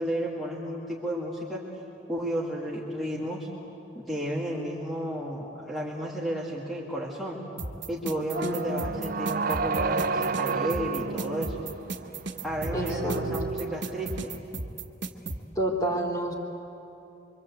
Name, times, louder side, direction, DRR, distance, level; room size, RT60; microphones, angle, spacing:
voice 1, 0.0-1.6 2.1-3.5 3.9-7.4 7.9-11.6 12.4-14.3, equal, ahead, -6 dB, 2.3 m, -32 dB
sound 1, 7.6-15.4, right 3 dB, 65° right, 1.5 m, -34 dB
sound 2, 8.3-14.3, right 4 dB, 45° right, 0.5 m, -31 dB
voice 2, 8.4-8.8 12.7-13.2 15.6-16.3, right 1 dB, 20° left, 0 dB, 3.5 m, -29 dB
25.5 x 25.0 x 8.4 m, 2.9 s
head